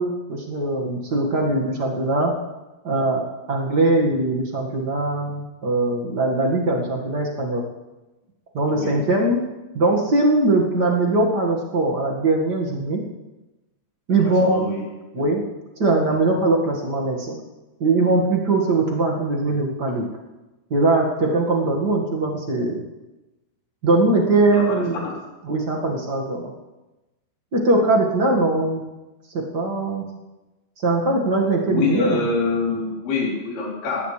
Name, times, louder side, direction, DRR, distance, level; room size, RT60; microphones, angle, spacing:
voice 1, 0.0-2.3 2.8-7.6 8.5-9.4 9.7-13.0 14.1-14.9 15.1-15.4 15.8-17.3 17.8-20.0 20.7-22.8 23.8-25.1 25.5-26.5 27.5-28.8 29.3-30.0 30.8-32.2, right 2 dB, 40° right, -2 dB, 1.5 m, -21 dB
voice 2, 14.2-14.8 24.5-25.2 31.7-34.1, left 4 dB, 85° left, -3 dB, 5.5 m, -26 dB
18.0 x 16.5 x 3.3 m, 1.1 s
omnidirectional pair, 4.5 m